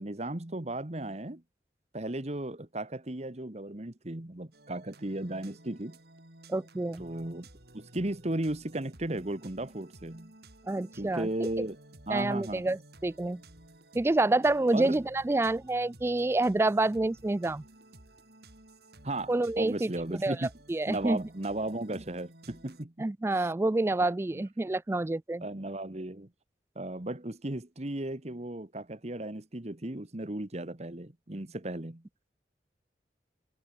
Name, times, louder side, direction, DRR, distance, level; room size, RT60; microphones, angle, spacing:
voice 1, 0.0-1.4 1.9-6.0 7.0-7.4 7.7-10.3 11.0-11.8 12.1-12.7 14.7-15.0 19.0-20.5 20.9-22.9 23.4-23.5 23.9-24.4 25.4-26.3 26.7-32.0, right 1 dB, 40° right, 1.5 m, -35 dB
sound 1, 4.5-22.8, right 1 dB, 60° right, 5.0 m, -54 dB
voice 2, 6.5-7.0 10.7-11.5 12.1-13.4 13.9-17.6 19.3-20.4 20.7-21.2 23.0-25.4, right 2 dB, 15° right, 0.3 m, -28 dB
head